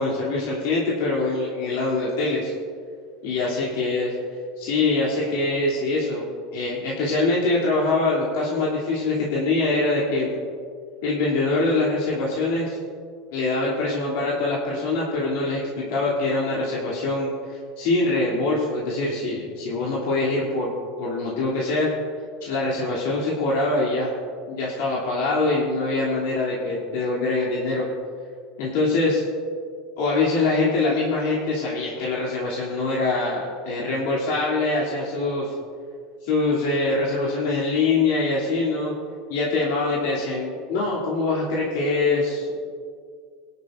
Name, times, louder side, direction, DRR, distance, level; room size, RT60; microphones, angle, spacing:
voice 1, 0.0-2.5 3.2-4.1 4.6-10.3 11.0-12.8 13.3-20.7 21.0-21.9 22.4-24.1 24.5-27.9 28.6-29.2 30.0-35.5 36.2-38.9 39.3-42.6, left 2 dB, 75° left, -5 dB, 2.9 m, -24 dB
20.5 x 12.0 x 2.6 m, 2.2 s
supercardioid pair, 130°, 0 cm